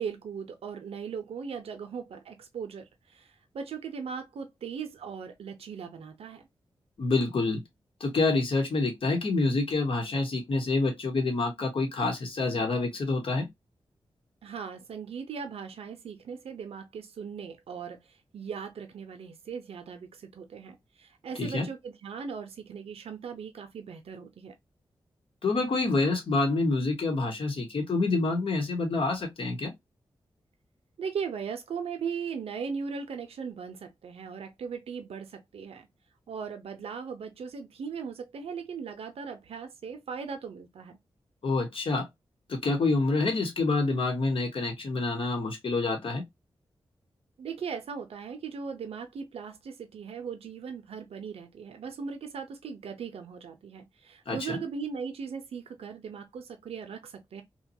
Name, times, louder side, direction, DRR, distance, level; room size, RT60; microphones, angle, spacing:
voice 1, 0.0-6.5 14.4-24.5 31.0-35.9 36.3-41.0 47.4-57.4, right 6 dB, 80° right, 0.6 m, -38 dB
voice 2, 7.0-7.6 8.0-13.5 21.4-21.7 25.4-29.7 41.4-42.1 42.5-46.2 54.3-54.6, left 3 dB, 65° left, 1.1 m, -27 dB
2.8 x 2.3 x 2.7 m
cardioid pair, 45°, 10 cm